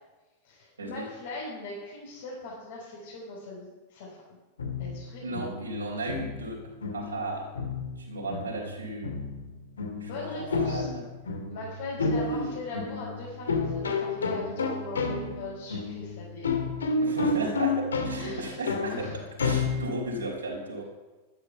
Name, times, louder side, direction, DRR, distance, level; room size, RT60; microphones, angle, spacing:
voice 1, 0.4-4.2 4.8-5.3 10.0-10.9 11.5-16.5 18.2-18.6 18.9-19.2, left 2 dB, 55° left, -7 dB, 5.7 m, -40 dB
sound 1, 4.6-20.3, left 3 dB, 70° left, 1.9 m, -31 dB
voice 2, 5.2-6.6 6.9-7.5 8.0-9.1 10.0-11.0 12.0-12.5 17.0-19.1 19.4-20.8, right 2 dB, 75° right, -1 dB, 4.1 m, -35 dB
13.0 x 12.0 x 7.1 m, 1.2 s
figure-of-eight pair, 90°, 0 cm